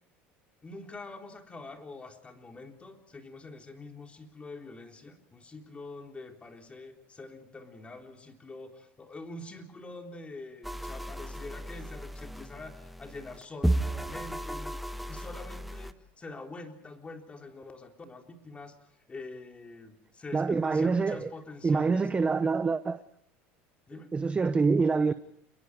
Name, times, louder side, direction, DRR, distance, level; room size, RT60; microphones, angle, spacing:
voice 1, 0.6-18.8 19.1-22.1 23.9-24.1, left 3 dB, 20° left, 3.7 m, -45 dB
sound 1, 10.6-15.9, right 1 dB, ahead, 1.3 m, -34 dB
voice 2, 20.3-21.3 21.6-23.0 24.1-25.1, right 4 dB, 20° right, 0.9 m, -26 dB
28.5 x 22.5 x 4.9 m
supercardioid pair, 105°, 6 cm